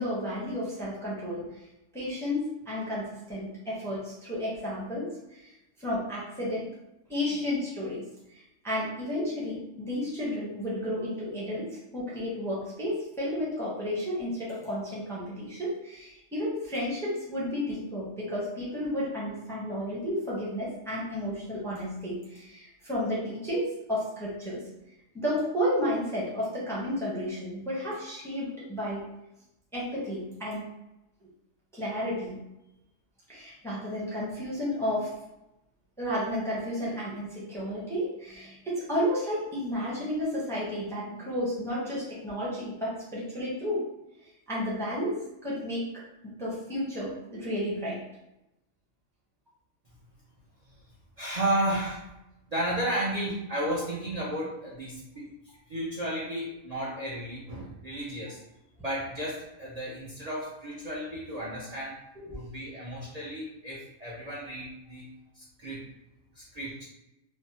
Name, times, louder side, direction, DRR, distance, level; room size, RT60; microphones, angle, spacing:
voice 1, 0.0-1.6 1.9-5.5 5.8-6.7 7.1-8.1 8.3-24.6 25.1-29.0 29.7-30.7 31.7-32.4 33.3-35.1 36.0-43.8 44.5-48.0 62.2-62.3, equal, 5° left, -6 dB, 0.5 m, -32 dB
voice 2, 51.2-52.1 52.5-55.3 55.7-58.4 58.8-62.0 62.3-65.9 66.3-66.8, right 1 dB, 55° right, -6 dB, 0.4 m, -33 dB
3.3 x 2.0 x 2.8 m, 0.90 s
omnidirectional pair, 1.5 m